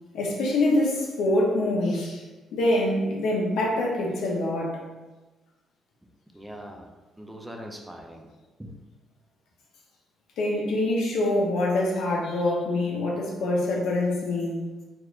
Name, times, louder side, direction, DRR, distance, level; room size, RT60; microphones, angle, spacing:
voice 1, 0.1-2.2 2.5-4.8 10.4-14.6, left 1 dB, 85° left, -2 dB, 0.7 m, -25 dB
voice 2, 6.3-8.3 8.6-8.8, equal, 5° right, 2 dB, 0.4 m, -42 dB
3.4 x 2.9 x 2.4 m, 1.2 s
cardioid pair, 90°, 0 cm